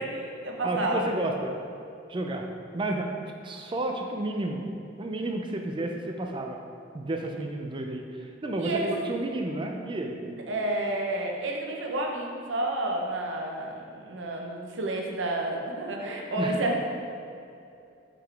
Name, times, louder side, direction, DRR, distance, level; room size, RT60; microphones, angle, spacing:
voice 1, 0.0-1.1 8.6-8.9 10.5-16.8, right 2 dB, 70° right, 0 dB, 0.8 m, -30 dB
voice 2, 0.6-1.5 2.1-2.5 2.7-4.6 5.0-6.6 6.9-10.2 16.4-16.6, right 1 dB, 25° right, 3 dB, 0.4 m, -31 dB
5.9 x 4.9 x 3.4 m, 2.6 s
head